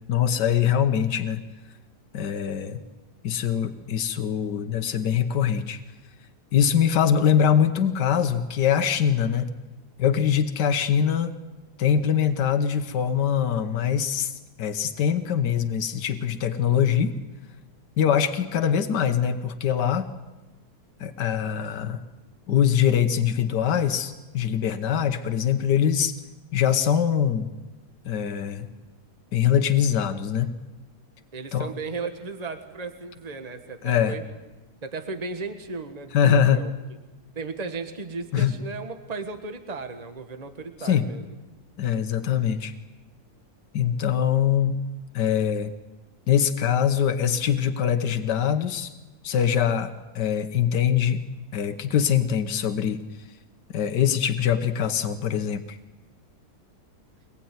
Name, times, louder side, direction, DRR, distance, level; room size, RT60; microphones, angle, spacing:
voice 1, 0.1-1.4 2.1-2.8 3.2-5.8 6.5-9.5 10.0-11.3 11.8-14.3 14.6-17.1 18.0-20.1 21.0-22.0 22.5-26.1 26.5-27.5 28.0-28.7 29.3-30.5 31.5-31.7 33.8-34.2 36.1-36.6 38.3-38.5 40.8-41.1 41.8-42.7 43.7-44.7 45.1-45.7 46.3-48.9 49.2-51.2 51.5-53.0 53.7-55.8, left 8 dB, 85° left, 7 dB, 1.7 m, -23 dB
voice 2, 31.3-34.2 34.8-36.7 37.3-41.2, right 4 dB, 25° right, 7 dB, 1.6 m, -35 dB
24.0 x 20.0 x 9.4 m, 1.2 s
omnidirectional pair, 1.8 m